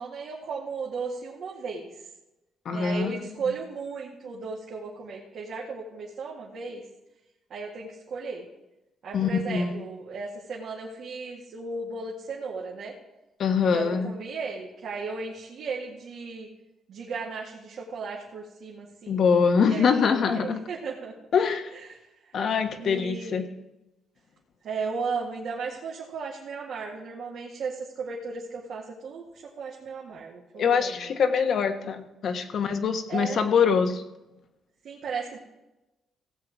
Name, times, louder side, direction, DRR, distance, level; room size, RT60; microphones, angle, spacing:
voice 1, 0.0-1.9 2.7-6.8 7.5-8.5 9.0-13.0 13.6-16.5 16.9-19.2 19.7-21.1 21.7-22.0 22.8-23.5 24.6-31.1 33.1-33.5 34.8-35.4, right 4 dB, 65° right, -4 dB, 2.1 m, -35 dB
voice 2, 2.6-3.2 3.5-3.6 9.1-9.9 13.4-14.1 19.1-20.6 21.3-21.7 22.3-23.5 30.6-34.0, left 6 dB, 60° left, 7 dB, 1.3 m, -24 dB
16.5 x 7.7 x 4.7 m, 0.97 s
cardioid pair, 90°, 0 cm